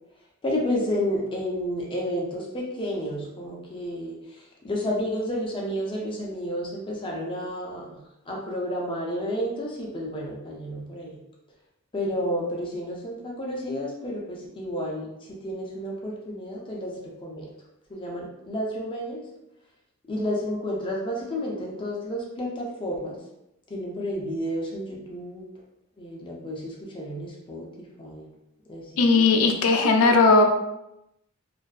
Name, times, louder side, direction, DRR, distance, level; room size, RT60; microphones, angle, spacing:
voice 1, 0.4-11.2 11.9-17.5 17.9-19.2 20.1-23.2 23.7-25.5 26.0-28.3 28.7-29.4, equal, 25° left, -2 dB, 0.5 m, -31 dB
voice 2, 29.0-30.4, left 3 dB, 85° left, 4 dB, 0.4 m, -18 dB
2.5 x 2.3 x 2.3 m, 0.86 s
head